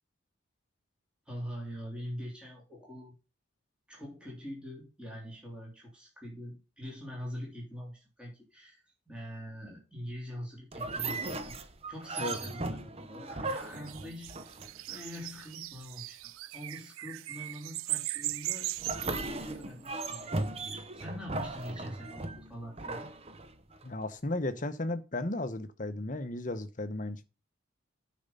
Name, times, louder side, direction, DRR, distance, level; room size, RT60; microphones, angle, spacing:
voice 1, 1.3-3.1 3.9-8.8 9.1-11.6 11.9-14.5 14.9-18.7 19.0-23.1, equal, 5° right, 3.1 m, -44 dB
sound 1, 10.7-15.0 18.8-23.9, right 2 dB, 30° right, 0.8 m, -37 dB
sound 2, 13.5-20.3, right 17 dB, 85° right, 0.3 m, -39 dB
voice 2, 23.8-27.2, left 2 dB, 40° left, 0.9 m, -34 dB
8.7 x 5.1 x 5.6 m
head